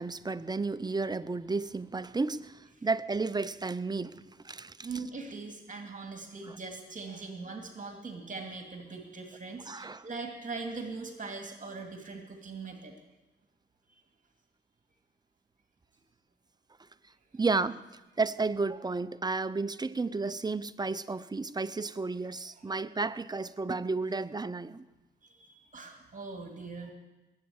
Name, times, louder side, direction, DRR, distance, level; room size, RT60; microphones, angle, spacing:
voice 1, 0.0-4.9 6.5-6.6 9.7-10.1 17.3-17.8 18.2-24.8, right 3 dB, 20° right, 0.6 m, -32 dB
voice 2, 4.8-12.9 22.2-22.3 25.2-26.9, right 4 dB, 45° right, 2.5 m, -41 dB
21.0 x 8.7 x 7.2 m
cardioid pair, 70°, 18 cm